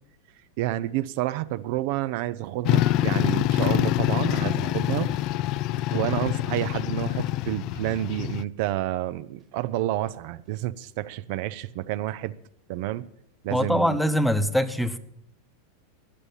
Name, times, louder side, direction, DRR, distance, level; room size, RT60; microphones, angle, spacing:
voice 1, 0.6-5.1 5.9-12.3 12.7-13.1 13.4-14.0, right 14 dB, 60° right, 0.5 m, -29 dB
sound 1, 2.6-8.4, left 14 dB, 50° left, 0.4 m, -25 dB
Dog, 4.1-6.0 6.7-7.5 9.7-10.6, right 7 dB, 40° right, 1.7 m, -49 dB
voice 2, 13.5-15.0, equal, ahead, 1.0 m, -23 dB
14.0 x 9.8 x 7.1 m
hypercardioid pair, 120°, 0 cm